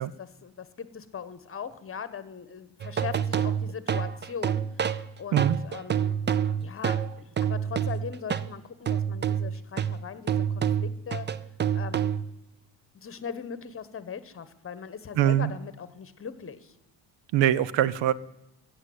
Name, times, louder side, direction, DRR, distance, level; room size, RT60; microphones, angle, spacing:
voice 1, 0.0-6.1 6.6-11.3 11.7-12.1 12.9-16.7, left 7 dB, 30° left, 14 dB, 1.2 m, -40 dB
sound 1, 2.8-8.5 8.9-12.4, right 8 dB, 25° right, 0.5 m, -28 dB
voice 2, 15.2-15.5 17.3-18.1, right 12 dB, 85° right, 20 dB, 0.8 m, -23 dB
15.0 x 8.2 x 9.5 m, 0.89 s
cardioid pair, 115°, 43 cm